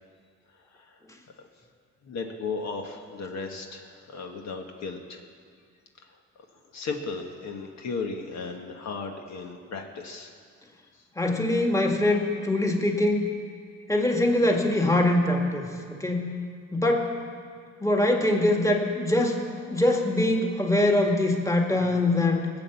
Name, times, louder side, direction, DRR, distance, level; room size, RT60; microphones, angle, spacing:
voice 1, 2.0-5.2 6.7-10.3, left 4 dB, 65° left, 3 dB, 1.5 m, -35 dB
voice 2, 11.2-13.3 13.9-16.3 16.7-17.2 17.8-22.5, left 1 dB, 10° left, 1 dB, 1.9 m, -23 dB
17.5 x 8.2 x 7.1 m, 2.3 s
cardioid pair, 90°, 30 cm